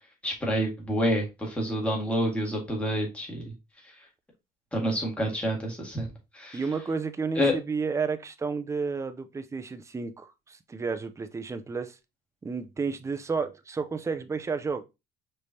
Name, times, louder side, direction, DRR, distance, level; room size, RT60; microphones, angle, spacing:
voice 1, 0.2-3.4 4.7-6.1 6.3-6.6 7.4-7.6, equal, 5° left, 1.8 m, -28 dB
voice 2, 6.5-12.0 12.4-14.8, right 5 dB, 15° right, 0.5 m, -31 dB
5.0 x 3.2 x 2.7 m
cardioid pair, 110°, 17 cm